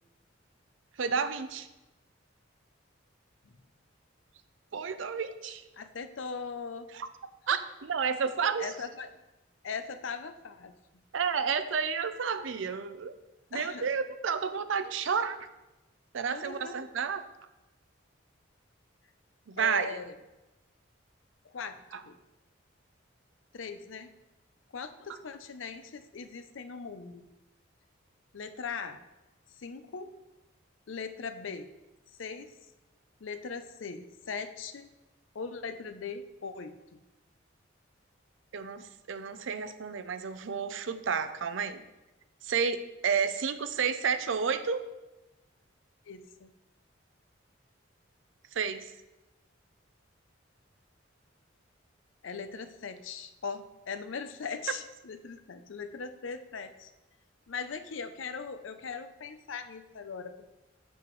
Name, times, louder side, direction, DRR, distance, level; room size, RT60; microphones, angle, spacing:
voice 1, 1.0-1.7 4.7-5.6 6.9-7.1 7.5-8.7 11.1-13.1 13.5-15.4 16.1-17.2 19.5-20.0 21.9-22.0 38.5-41.8 42.4-44.9 48.5-48.9, right 6 dB, 75° right, 11 dB, 0.5 m, -31 dB
voice 2, 5.7-6.9 8.6-9.2 9.6-11.0 13.5-13.9 16.3-16.7 19.6-20.1 21.4-22.2 23.5-24.1 24.7-27.3 28.3-29.0 29.5-30.1 30.9-31.7 32.1-32.5 33.2-34.9 35.3-37.0 46.1-46.5 52.2-56.9 57.5-60.5, left 5 dB, 75° left, 10 dB, 0.5 m, -40 dB
7.6 x 7.0 x 3.1 m, 1.0 s
head